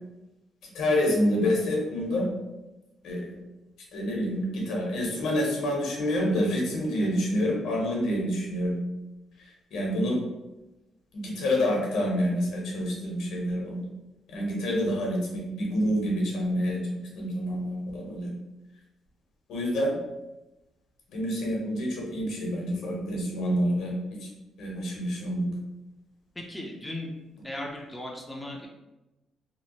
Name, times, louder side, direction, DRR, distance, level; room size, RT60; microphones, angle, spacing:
voice 1, 0.6-2.3 3.0-3.3 3.9-8.8 9.7-10.2 11.1-13.8 14.3-16.8 17.1-18.3 19.5-20.0 21.1-24.3 24.6-25.5, equal, 80° left, -2 dB, 0.9 m, -27 dB
voice 2, 26.4-27.1 27.4-28.7, left 1 dB, 10° left, -2 dB, 0.5 m, -37 dB
2.8 x 2.0 x 2.9 m, 0.99 s
cardioid pair, 90°, 0 cm